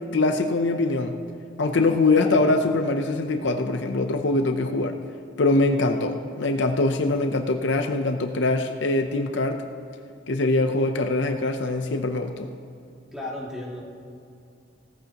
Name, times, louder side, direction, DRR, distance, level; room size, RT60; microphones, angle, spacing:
voice 1, 0.1-1.2 1.6-5.0 5.4-9.6 10.3-12.5, left 2 dB, 70° left, 5 dB, 0.7 m, -23 dB
voice 2, 2.2-2.5 5.9-6.3 13.1-13.8, left 1 dB, 5° right, -5 dB, 2.2 m, -35 dB
17.5 x 14.5 x 3.0 m, 2.5 s
head